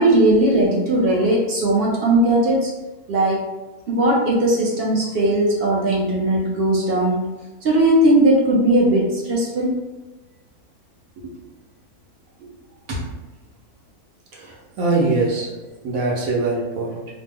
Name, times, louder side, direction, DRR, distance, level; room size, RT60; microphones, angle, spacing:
voice 1, 0.0-2.7 3.1-3.5 3.9-7.3 7.6-9.8, right 1 dB, 60° right, -3 dB, 0.7 m, -18 dB
voice 2, 14.3-15.5 15.8-17.0, right 3 dB, 75° right, -2 dB, 1.2 m, -22 dB
3.0 x 2.0 x 3.4 m, 1.1 s
omnidirectional pair, 1.5 m